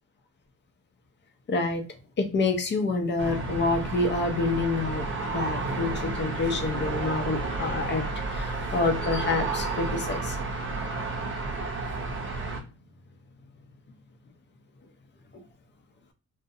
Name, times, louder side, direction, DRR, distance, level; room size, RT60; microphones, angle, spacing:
voice 1, 1.5-1.9 2.2-10.4 15.3-15.4, left 3 dB, 35° left, 6 dB, 0.5 m, -28 dB
sound 1, 3.2-12.6, right 3 dB, 40° right, 0.6 m, -31 dB
2.5 x 2.0 x 2.6 m, 0.34 s
cardioid pair, 130°, 31 cm